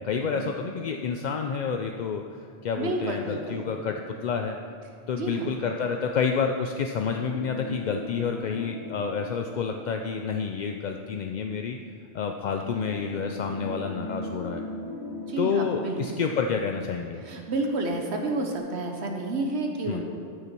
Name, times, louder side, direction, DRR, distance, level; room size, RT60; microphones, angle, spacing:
voice 1, 0.0-2.2 2.6-4.6 5.1-11.8 12.1-14.6 15.4-17.2 19.9-20.0, left 6 dB, 60° left, 4 dB, 0.5 m, -29 dB
sound 1, 2.8-5.5 7.0-11.4 12.6-17.5 17.9-18.0 18.6-18.7, left 1 dB, 15° left, 1.3 m, -41 dB
voice 2, 2.8-3.6 5.2-5.5 12.7-12.9 15.3-16.2 17.2-20.0, right 2 dB, 75° right, 2 dB, 1.2 m, -30 dB
13.0 x 6.8 x 4.4 m, 2.5 s
omnidirectional pair, 1.1 m